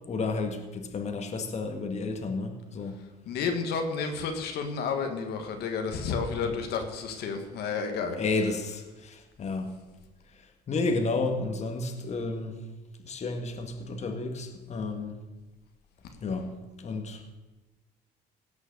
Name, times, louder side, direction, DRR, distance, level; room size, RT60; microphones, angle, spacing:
voice 1, 0.1-3.0 6.3-6.6 8.2-9.7 10.7-12.5 13.0-15.2 16.2-16.5 16.8-17.2, left 3 dB, 40° left, 4 dB, 1.7 m, -31 dB
voice 2, 3.3-8.2, left 5 dB, 75° left, 4 dB, 1.7 m, -31 dB
17.0 x 6.3 x 6.7 m, 1.2 s
cardioid pair, 110°, 17 cm